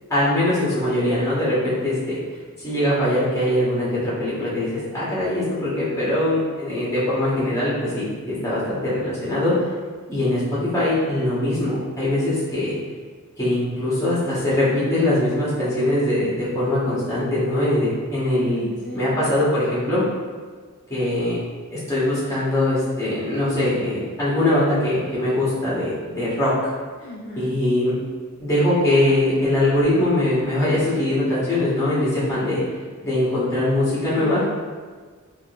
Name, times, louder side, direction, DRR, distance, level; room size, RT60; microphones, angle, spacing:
voice 1, 0.1-2.2 2.6-9.5 10.1-12.7 13.4-18.6 18.9-20.0 20.9-21.4 21.7-26.5 27.3-27.9 28.4-32.6 33.0-34.4, left 1 dB, 15° left, -9 dB, 1.2 m, -22 dB
voice 2, 18.6-19.2 27.0-27.5 34.1-34.5, left 1 dB, 55° left, -5 dB, 0.4 m, -34 dB
3.7 x 2.6 x 2.4 m, 1.5 s
head